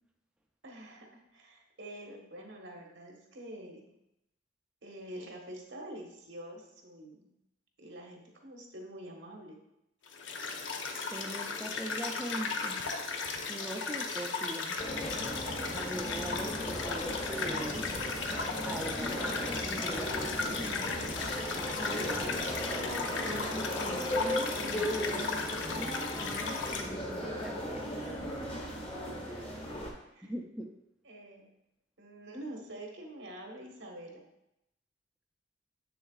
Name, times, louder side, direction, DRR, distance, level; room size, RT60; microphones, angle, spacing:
voice 1, 0.6-3.9 4.8-7.3 7.8-9.6 29.2-29.7 30.0-30.3 31.0-31.5 32.0-34.2, right 1 dB, 75° right, 1 dB, 1.3 m, -46 dB
sound 1, 10.1-26.8, left 4 dB, 85° left, 0.7 m, -36 dB
voice 2, 11.1-12.8 13.5-14.8 15.7-18.0 18.6-21.0 21.8-22.4 23.2-28.1 29.3-29.5 30.2-30.7, right 1 dB, 5° right, 1 dB, 0.4 m, -41 dB
sound 2, 14.8-29.9, equal, 30° left, 1.1 m, -37 dB
7.5 x 6.6 x 2.4 m, 0.86 s
head